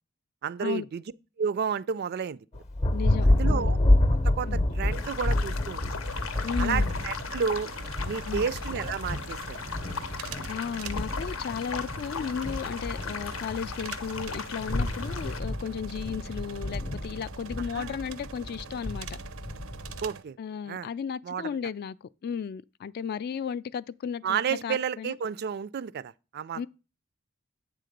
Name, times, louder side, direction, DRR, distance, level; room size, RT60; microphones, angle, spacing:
voice 1, 0.4-1.0 1.4-2.4 3.2-3.8 4.1-6.0 6.6-7.7 8.1-9.6 17.7-18.0 20.0-20.4 20.7-20.9 21.2-21.5 24.2-26.6, right 7 dB, 50° right, 0.3 m, -31 dB
Thunder, 2.5-20.1, left 1 dB, 35° left, 0.7 m, -29 dB
voice 2, 2.9-3.7 4.5-4.6 6.4-6.9 8.3-8.5 10.1-19.1 20.4-25.1 26.6-26.7, left 7 dB, 50° left, 0.3 m, -35 dB
sound 1, 4.9-15.4, left 6 dB, 80° left, 0.7 m, -38 dB
sound 2, 6.0-20.2, right 6 dB, 90° right, 0.6 m, -45 dB
8.3 x 3.8 x 6.5 m
head